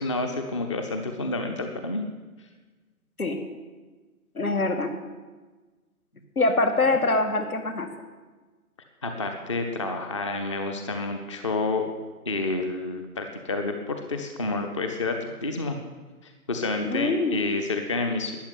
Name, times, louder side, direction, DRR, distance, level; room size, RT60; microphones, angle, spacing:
voice 1, 0.0-2.0 9.0-11.8 12.3-15.8 16.2-18.4, left 3 dB, 20° left, 5 dB, 0.7 m, -29 dB
voice 2, 4.4-4.9 6.4-7.9 16.8-17.5, left 2 dB, 70° left, 5 dB, 2.5 m, -24 dB
13.0 x 9.2 x 9.6 m, 1.3 s
figure-of-eight pair, 140°, 45 cm